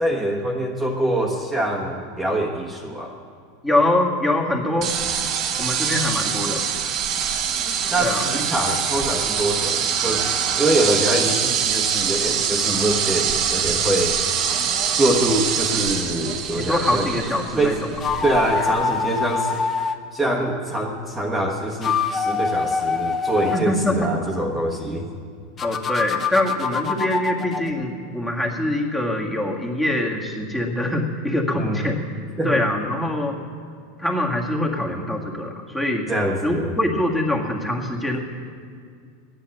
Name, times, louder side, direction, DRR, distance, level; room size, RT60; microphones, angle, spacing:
voice 1, 0.0-3.1 7.9-10.2 10.6-14.1 14.9-17.1 17.6-17.8 18.2-19.5 20.1-25.0 31.5-31.9 32.4-32.6 36.1-36.7, right 1 dB, 10° right, -2 dB, 1.4 m, -24 dB
voice 2, 3.6-5.0 5.6-6.7 8.0-8.2 16.6-17.8 18.6-18.7 23.5-24.1 25.6-32.0 32.4-33.4 34.0-36.1 36.4-38.2, left 1 dB, 10° left, -1 dB, 1.9 m, -24 dB
sound 1, 4.8-18.7, right 7 dB, 45° right, 1.1 m, -24 dB
sound 2, 17.9-20.0 21.6-23.6 25.6-27.7, left 5 dB, 25° left, 0.9 m, -24 dB
13.0 x 10.0 x 7.7 m, 2.3 s
supercardioid pair, 130°, 0 cm